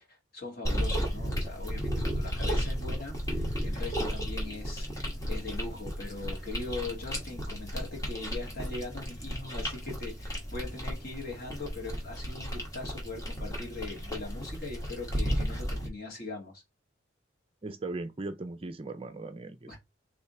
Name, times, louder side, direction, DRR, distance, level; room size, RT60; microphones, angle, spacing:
voice 1, 0.0-16.6 19.7-19.8, left 3 dB, 50° left, 2.0 m, -41 dB
sound 1, 0.6-15.9, equal, 15° left, 1.3 m, -34 dB
voice 2, 17.6-19.8, right 2 dB, 30° right, 0.4 m, -38 dB
3.5 x 3.2 x 4.2 m
head